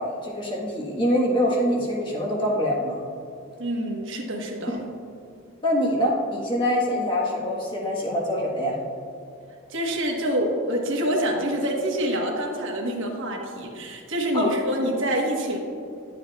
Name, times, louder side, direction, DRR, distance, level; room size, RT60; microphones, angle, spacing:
voice 1, 0.0-3.0 5.6-8.7 14.3-14.5, equal, 20° left, -3 dB, 1.3 m, -24 dB
voice 2, 3.6-4.8 9.7-15.6, equal, 60° right, -1 dB, 1.3 m, -26 dB
11.5 x 7.7 x 2.3 m, 2.5 s
head